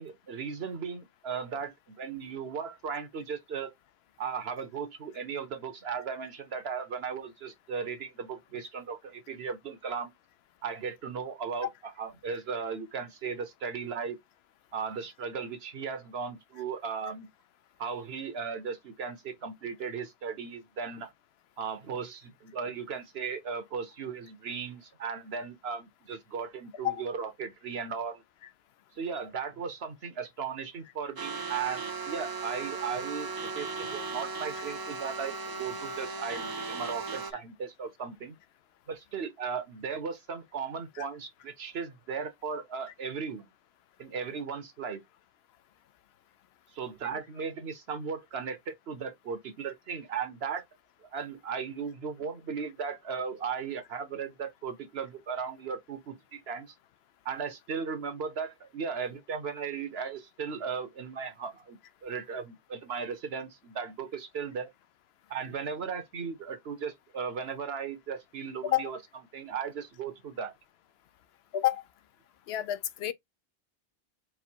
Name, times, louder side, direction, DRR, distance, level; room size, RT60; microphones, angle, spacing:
voice 1, 0.0-3.7 4.2-10.1 10.6-14.2 14.7-17.3 17.8-21.1 21.6-28.2 29.0-38.4 38.9-43.5 44.0-45.0 46.7-50.6 51.1-56.7 57.2-64.7 65.3-69.0 69.3-70.5, right 6 dB, 75° right, 1.2 m, -36 dB
sound 1, 31.2-37.3, right 4 dB, 35° right, 0.3 m, -37 dB
voice 2, 71.5-71.8 72.5-73.1, left 13 dB, 80° left, 0.8 m, -29 dB
4.7 x 2.2 x 4.4 m
omnidirectional pair, 1.0 m